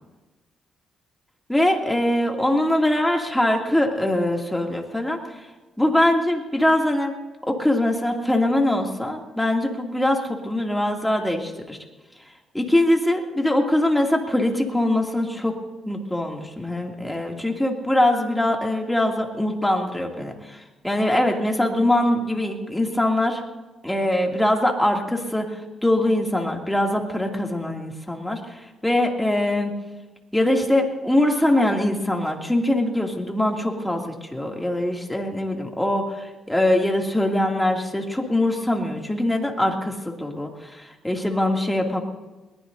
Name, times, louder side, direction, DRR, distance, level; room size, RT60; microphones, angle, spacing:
voice 1, 1.5-5.4 5.8-7.1 7.4-11.8 12.5-15.6 15.8-23.4 23.8-29.7 30.3-34.0 34.3-42.0, left 1 dB, 5° left, 1 dB, 2.7 m, -22 dB
22.0 x 20.0 x 2.7 m, 1.2 s
cardioid pair, 90°, 0 cm